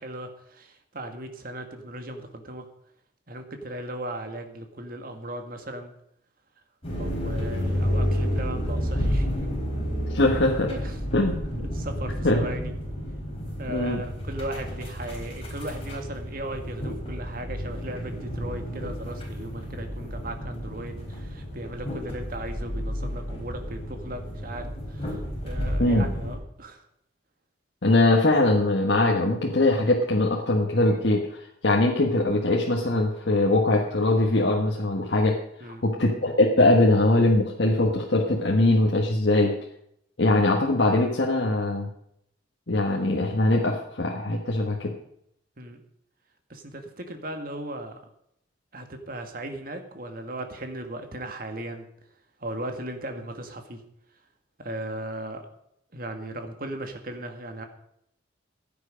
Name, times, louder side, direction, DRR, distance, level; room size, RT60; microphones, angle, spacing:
voice 1, 0.0-2.7 3.3-5.9 6.9-9.3 10.2-11.0 11.5-12.7 13.6-26.8 35.6-35.8 45.6-45.8 46.5-48.0 48.7-51.9 52.4-53.8 54.6-55.5 55.9-57.6, right 1 dB, 50° right, 5 dB, 1.8 m, -37 dB
sound 1, 6.8-26.4, equal, 30° left, 4.3 m, -31 dB
voice 2, 10.1-10.7 11.1-11.4 12.2-12.5 13.7-14.0 25.8-26.1 27.8-35.3 35.8-39.6 40.2-41.9 42.7-44.9, left 2 dB, 70° left, -1 dB, 1.5 m, -22 dB
15.5 x 9.4 x 5.2 m, 0.74 s
head